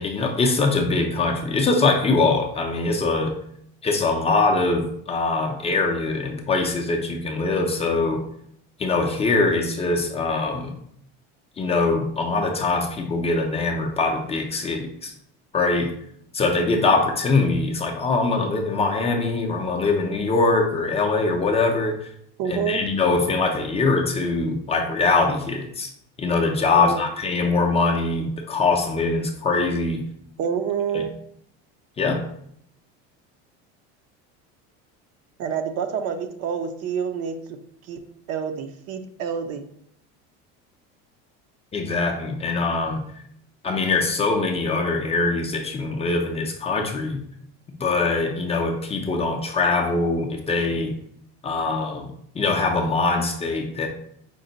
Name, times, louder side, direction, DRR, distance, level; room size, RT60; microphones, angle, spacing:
voice 1, 0.0-3.3 3.8-8.2 8.8-10.7 11.6-15.1 15.5-15.9 16.3-22.1 22.5-25.9 26.2-30.1 30.9-31.0 32.0-32.3 41.7-43.0 43.6-47.2 47.8-51.0 51.4-53.9, left 3 dB, 20° left, 2 dB, 0.5 m, -23 dB
voice 2, 22.4-22.8 26.8-27.0 30.4-31.1 35.4-37.6 37.9-38.0 38.3-39.6, right 7 dB, 55° right, 8 dB, 0.6 m, -27 dB
5.2 x 2.1 x 3.8 m, 0.69 s
cardioid pair, 135°, 31 cm